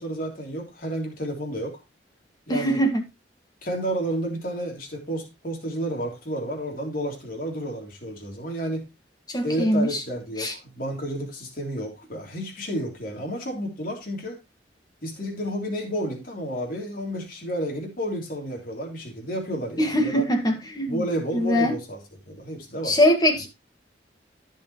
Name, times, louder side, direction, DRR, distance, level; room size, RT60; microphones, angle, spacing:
voice 1, 0.0-1.8 2.5-2.8 3.6-8.9 9.4-14.4 15.0-20.3 20.9-23.0, right 1 dB, 50° left, 3.4 m, -31 dB
voice 2, 2.5-3.0 9.3-10.0 10.4-10.5 19.8-21.0 21.3-21.7 22.8-23.5, equal, 20° left, 1.9 m, -22 dB
15.0 x 6.0 x 3.1 m
head